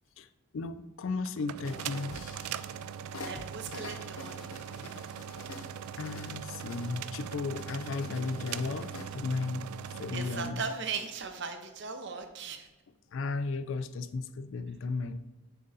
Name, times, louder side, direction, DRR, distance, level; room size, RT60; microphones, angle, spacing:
voice 1, 0.5-2.2 6.0-10.6 13.1-15.2, left 4 dB, 60° left, 0.3 m, -35 dB
sound 1, 1.2-10.5, right 8 dB, 85° right, 0.3 m, -41 dB
sound 2, 1.6-2.8 3.1-7.1 7.5-9.1, left 2 dB, 75° left, 0.7 m, -47 dB
voice 2, 3.3-4.8 10.1-12.7, right 5 dB, 50° right, 0.7 m, -38 dB
7.3 x 3.9 x 4.0 m
head